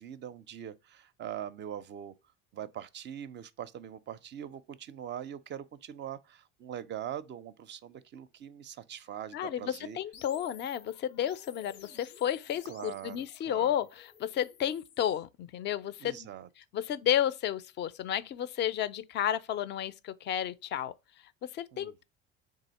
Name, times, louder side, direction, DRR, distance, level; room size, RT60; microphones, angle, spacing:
voice 1, 0.0-2.1 2.5-10.0 12.6-13.8 16.0-16.5 21.7-21.9, right 10 dB, 30° right, 0.4 m, -42 dB
voice 2, 9.3-16.3 16.6-20.9 21.4-22.0, left 10 dB, 30° left, 0.4 m, -32 dB
sound 1, 10.1-15.2, left 8 dB, 90° left, 0.6 m, -54 dB
3.7 x 2.7 x 4.0 m
hypercardioid pair, 70°, 36 cm